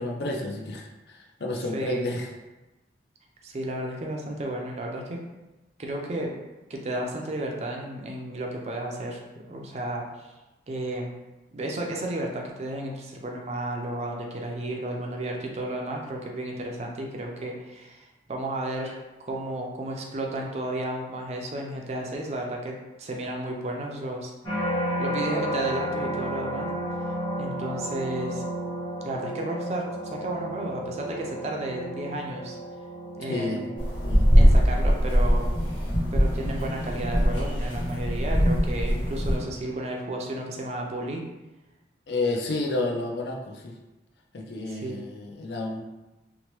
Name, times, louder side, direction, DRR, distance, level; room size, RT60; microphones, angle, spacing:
voice 1, 0.0-2.3 9.5-9.7 33.3-33.6 34.0-34.3 42.1-43.8 44.3-45.8, left 2 dB, 65° left, 1 dB, 0.4 m, -30 dB
voice 2, 1.7-2.0 3.4-5.2 5.8-6.3 6.7-9.2 9.5-10.1 10.7-11.1 11.5-24.3 25.0-26.7 27.4-28.4 29.0-32.6 33.2-33.7 34.4-35.5 36.1-41.2 44.7-45.0, right 1 dB, 35° right, 0 dB, 0.4 m, -32 dB
sound 1, 24.4-39.6 40.2-40.6, equal, 25° left, 0.8 m, -34 dB
sound 2, 33.8-39.4, equal, 90° left, 0.8 m, -22 dB
2.9 x 2.1 x 3.0 m, 1.1 s
head